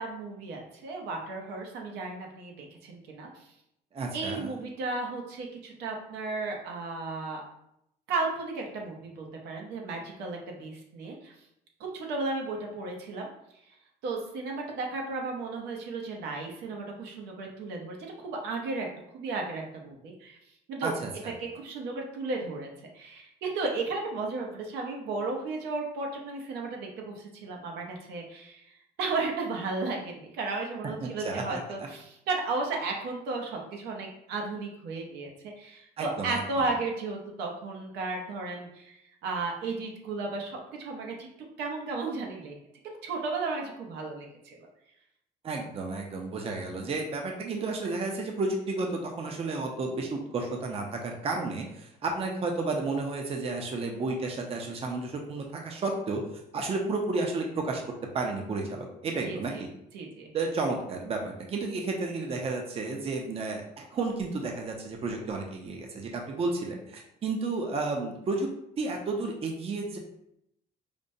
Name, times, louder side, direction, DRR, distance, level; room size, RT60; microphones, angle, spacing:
voice 1, 0.0-3.5 4.1-7.4 8.1-11.3 11.8-13.3 14.0-18.9 19.1-20.4 20.7-20.9 21.4-22.7 22.9-41.3 41.6-42.6 43.0-44.7 59.2-59.6 59.9-60.3, right 3 dB, 85° right, 0 dB, 0.8 m, -34 dB
voice 2, 3.9-4.5 20.8-21.3 31.0-31.9 36.0-36.4 45.4-57.8 58.1-59.7 60.3-68.5 68.8-70.0, right 3 dB, 35° right, 2 dB, 0.6 m, -32 dB
5.0 x 2.1 x 2.6 m, 0.79 s
cardioid pair, 110°, 17 cm